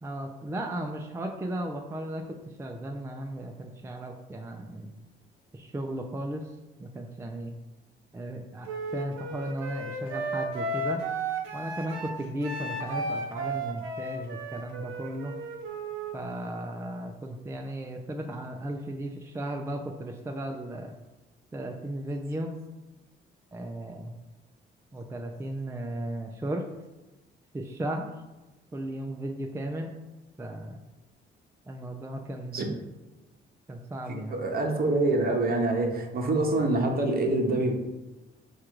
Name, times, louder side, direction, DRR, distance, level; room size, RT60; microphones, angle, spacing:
voice 1, 0.0-4.9 5.5-7.5 8.1-11.0 11.5-15.3 16.1-20.9 21.5-22.5 23.5-24.1 24.9-26.7 27.5-28.1 28.7-29.9 30.4-30.8 31.7-32.8 33.7-34.4, right 1 dB, 15° right, 2 dB, 0.4 m, -35 dB
Wind instrument woodwind instrument, 8.7-16.2, right 2 dB, 80° right, 0.6 m, -34 dB
voice 2, 34.1-37.7, right 2 dB, 50° right, 3 dB, 0.8 m, -26 dB
4.6 x 2.4 x 4.5 m, 1.1 s
cardioid pair, 90°, 20 cm